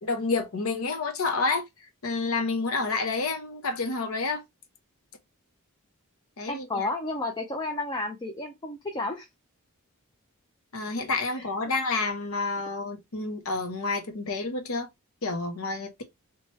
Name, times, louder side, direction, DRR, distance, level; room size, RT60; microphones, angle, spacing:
voice 1, 0.0-1.6 2.0-4.4 6.4-6.9 10.7-14.9 15.2-16.0, left 3 dB, 70° left, 0.8 m, -29 dB
voice 2, 6.5-9.3 11.3-11.5, left 2 dB, 20° left, 0.4 m, -32 dB
3.1 x 2.2 x 2.9 m
head